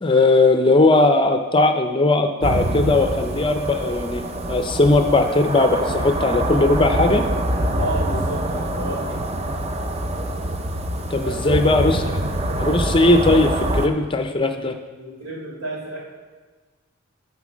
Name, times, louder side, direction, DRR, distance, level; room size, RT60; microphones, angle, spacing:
voice 1, 0.0-4.2 4.5-7.2 11.1-12.0 12.6-14.8, left 2 dB, 25° left, 6 dB, 0.5 m, -18 dB
sound 1, 2.4-13.9, right 1 dB, 30° right, 0.5 m, -25 dB
voice 2, 7.8-9.2 11.2-11.6 15.0-16.0, right 2 dB, 80° right, -3 dB, 3.5 m, -31 dB
12.0 x 4.5 x 6.1 m, 1.4 s
head